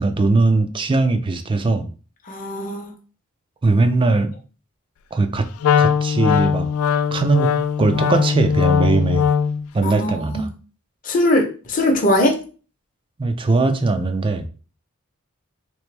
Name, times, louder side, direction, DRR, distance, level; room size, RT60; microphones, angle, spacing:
voice 1, 0.0-1.9 3.6-4.3 5.1-5.4 5.8-6.7 7.1-7.5 7.8-9.3 9.7-10.5 13.2-14.5, right 3 dB, 25° right, 8 dB, 0.4 m, -19 dB
voice 2, 2.3-2.9 9.8-10.5 11.0-12.4, left 1 dB, 40° left, 1 dB, 0.7 m, -20 dB
Wind instrument woodwind instrument, 5.6-9.7, left 7 dB, 80° left, 0.3 m, -19 dB
3.3 x 3.0 x 3.2 m, 0.37 s
head